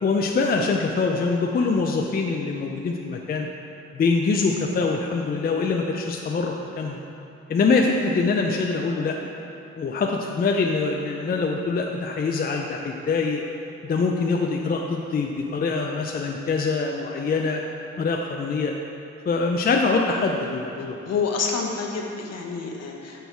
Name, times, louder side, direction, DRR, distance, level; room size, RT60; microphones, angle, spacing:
voice 1, 0.0-3.5 3.9-7.0 7.5-9.2 9.8-13.4 13.8-17.6 18.0-18.7 19.3-21.0, left 4 dB, 30° left, 1 dB, 0.5 m, -24 dB
voice 2, 21.0-23.3, left 5 dB, 55° left, 1 dB, 1.0 m, -28 dB
6.2 x 5.3 x 4.6 m, 2.9 s
cardioid pair, 90°, 30 cm